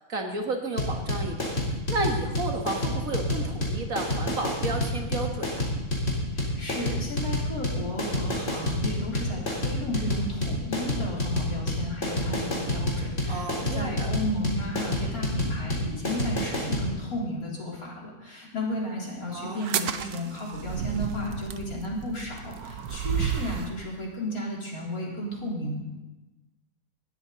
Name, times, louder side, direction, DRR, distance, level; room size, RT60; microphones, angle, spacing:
voice 1, 0.1-1.5 1.9-5.6 13.3-14.1 19.3-19.6 22.8-22.9, right 2 dB, 65° right, 3 dB, 2.2 m, -32 dB
sound 1, 0.8-16.9, left 1 dB, 55° left, 4.1 m, -28 dB
voice 2, 6.3-25.8, left 1 dB, 75° left, -4 dB, 4.3 m, -33 dB
sound 2, 19.6-23.8, right 8 dB, 85° right, 1.3 m, -32 dB
19.0 x 13.5 x 4.1 m, 1.1 s
omnidirectional pair, 1.5 m